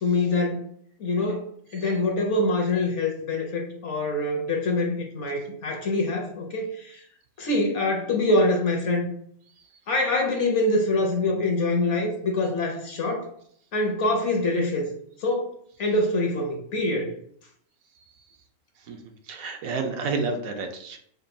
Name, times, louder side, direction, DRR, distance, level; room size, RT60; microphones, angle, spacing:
voice 1, 0.0-0.7 1.0-1.5 1.7-7.0 7.4-9.1 9.9-13.3 13.7-14.9 15.2-15.5 15.8-17.1, left 2 dB, 60° left, 2 dB, 0.9 m, -25 dB
voice 2, 18.0-18.4 18.8-21.0, right 4 dB, 70° right, 4 dB, 1.0 m, -31 dB
5.3 x 2.2 x 2.6 m, 0.63 s
omnidirectional pair, 1.6 m